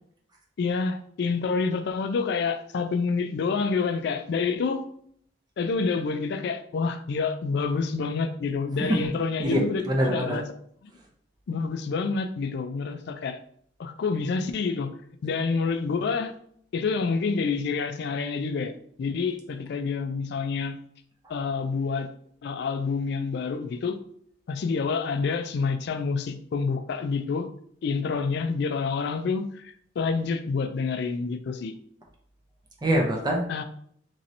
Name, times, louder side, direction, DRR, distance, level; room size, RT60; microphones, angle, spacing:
voice 1, 0.6-4.8 5.6-10.4 10.8-10.9 11.5-13.4 13.8-15.0 15.2-16.3 16.7-20.8 21.3-22.1 22.4-24.0 24.5-27.5 27.8-31.7 33.5-33.6, left 4 dB, 60° left, 8 dB, 0.3 m, -28 dB
voice 2, 8.7-9.1 9.4-10.4 32.8-33.6, equal, 20° right, 0 dB, 0.5 m, -25 dB
3.1 x 2.8 x 2.6 m, 0.64 s
head